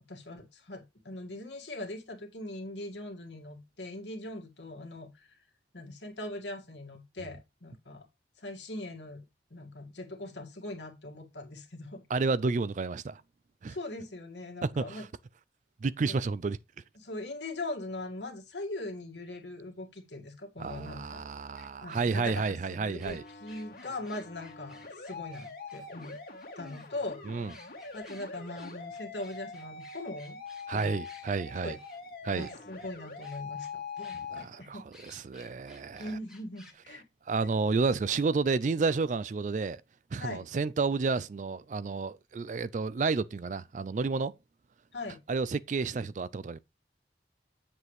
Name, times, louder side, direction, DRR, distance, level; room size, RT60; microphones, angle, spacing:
voice 1, 0.1-5.4 5.7-8.1 8.4-9.2 9.5-12.0 13.7-15.1 16.1-16.2 17.0-21.2 21.8-26.2 26.6-27.6 27.9-30.4 30.7-31.0 31.5-31.8 32.3-34.8 35.9-37.0 40.2-40.4 44.9-45.2, left 2 dB, 80° left, 2.0 m, -41 dB
voice 2, 12.1-13.2 13.6-13.8 14.6-15.1 15.8-16.6 20.6-23.2 27.3-27.5 30.7-31.8 32.2-32.5 34.1-36.1 37.3-39.8 40.1-44.3 45.3-46.6, right 4 dB, 45° right, 0.3 m, -31 dB
sound 1, 21.6-26.9 27.5-31.3 31.8-32.0 32.4-32.9 33.2-33.7 34.0-34.5 34.9-36.7, left 2 dB, 5° right, 1.6 m, -56 dB
sound 2, 23.1-34.4, left 4 dB, 55° left, 2.0 m, -44 dB
8.1 x 7.3 x 3.2 m
head